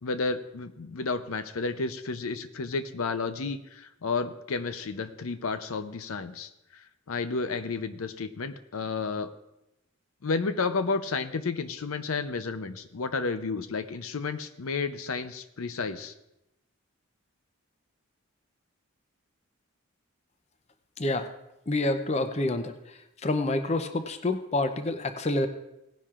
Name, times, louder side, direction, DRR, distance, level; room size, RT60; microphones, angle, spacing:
voice 1, 0.0-9.3 10.2-16.1, left 4 dB, 80° left, 11 dB, 0.6 m, -32 dB
voice 2, 21.0-21.3 21.7-22.7 23.2-25.5, left 2 dB, 30° left, 8 dB, 0.6 m, -27 dB
17.5 x 10.0 x 2.5 m, 0.89 s
head